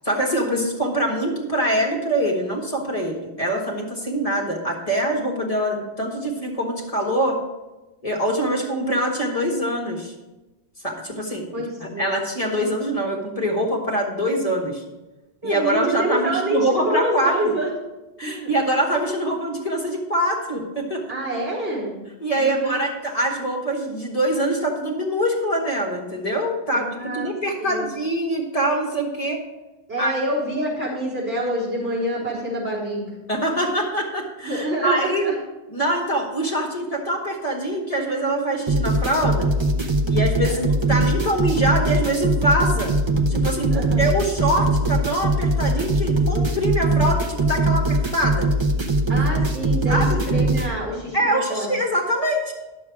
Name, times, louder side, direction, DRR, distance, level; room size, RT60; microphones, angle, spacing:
voice 1, 0.0-7.4 8.0-10.1 10.8-11.5 11.8-14.8 15.4-17.4 18.2-21.0 22.2-29.4 30.0-30.1 33.3-35.3 35.7-39.5 40.1-42.9 43.3-48.5 49.1-49.2 49.9-50.2 51.1-52.5, right 1 dB, 30° left, -1 dB, 1.7 m, -24 dB
voice 2, 11.5-12.2 15.4-17.7 18.2-18.6 21.1-21.9 22.4-22.9 26.7-27.3 27.6-27.9 29.9-33.1 34.4-35.4 40.4-40.6 43.7-44.0 49.1-51.7, right 1 dB, 90° right, -5 dB, 4.0 m, -27 dB
sound 1, 38.7-50.7, right 2 dB, 25° right, 0.8 m, -21 dB
11.0 x 7.1 x 4.8 m, 1.1 s
omnidirectional pair, 1.2 m